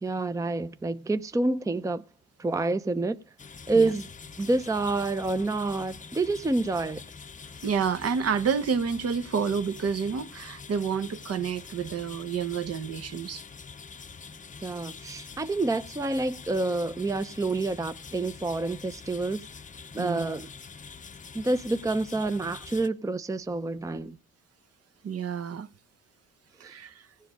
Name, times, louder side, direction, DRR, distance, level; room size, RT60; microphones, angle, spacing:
voice 1, 0.0-2.0 2.4-3.2 3.7-4.1 4.4-7.0 14.6-19.5 19.9-20.5 21.3-24.2, right 2 dB, 10° right, 0.6 m, -28 dB
sound 1, 3.4-22.9, left 5 dB, 25° left, 0.7 m, -45 dB
voice 2, 7.6-13.4 20.0-20.3 25.0-25.7 26.6-27.1, right 6 dB, 55° right, 1.0 m, -29 dB
16.0 x 7.6 x 5.1 m
cardioid pair, 90°, 30 cm